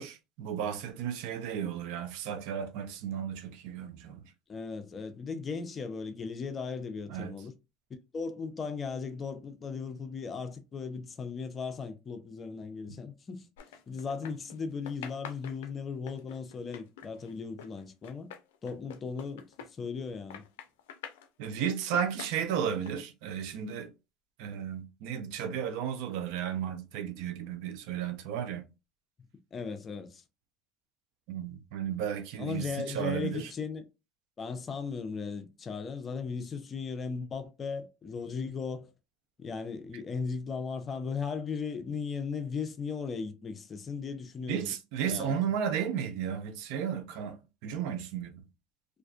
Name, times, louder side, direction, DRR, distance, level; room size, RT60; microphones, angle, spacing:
voice 1, 0.0-4.2 7.1-7.3 12.9-13.0 21.4-23.9 24.4-28.6 31.3-33.5 44.5-48.4, right 8 dB, 75° right, 0.5 m, -34 dB
voice 2, 4.5-7.5 8.1-13.5 13.9-18.3 18.6-20.5 29.5-30.2 32.4-33.9 34.4-38.9 39.4-44.7 45.0-45.3, left 5 dB, 30° left, 0.5 m, -37 dB
sound 1, 13.6-14.6 14.9-20.0 20.3-21.3 21.8-22.9, left 7 dB, 90° left, 0.4 m, -46 dB
2.5 x 2.3 x 2.3 m
supercardioid pair, 105°, 0 cm